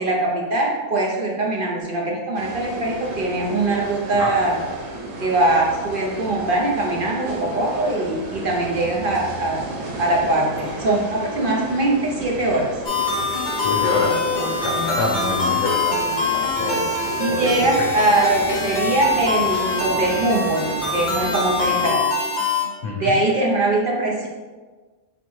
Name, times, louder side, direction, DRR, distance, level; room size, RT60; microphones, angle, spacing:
voice 1, 0.0-4.6 5.2-9.6 10.0-12.7 17.2-22.0 23.0-24.3, right 2 dB, 55° right, -2 dB, 0.6 m, -22 dB
sound 1, 2.3-22.0, right 1 dB, 85° right, 1.2 m, -34 dB
sound 2, 12.9-22.6, left 3 dB, 40° left, 0.8 m, -24 dB
voice 2, 13.5-16.8 17.3-17.9 22.8-23.1, left 3 dB, 70° left, -2 dB, 0.9 m, -26 dB
4.1 x 3.4 x 3.1 m, 1.3 s
omnidirectional pair, 1.5 m